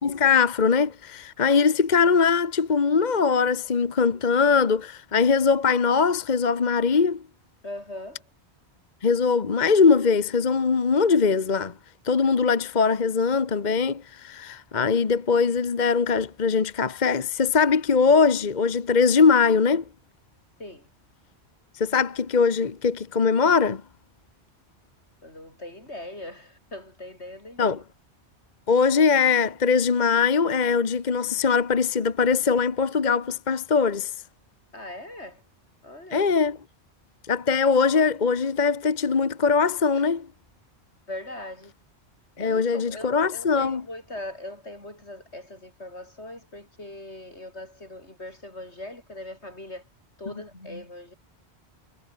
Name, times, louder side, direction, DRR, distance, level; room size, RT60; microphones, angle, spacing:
voice 1, 0.0-7.2 9.0-11.7 12.0-19.8 21.8-23.8 27.6-27.8 28.7-34.1 36.1-36.6 37.3-40.3 42.4-43.8, left 5 dB, 45° left, 1.2 m, -21 dB
voice 2, 7.6-8.3 20.6-20.9 25.2-27.8 34.7-35.4 35.8-36.3 39.9-40.1 41.1-41.7 42.4-49.8 50.2-51.1, left 1 dB, 80° left, 7.7 m, -40 dB
omnidirectional pair, 1.1 m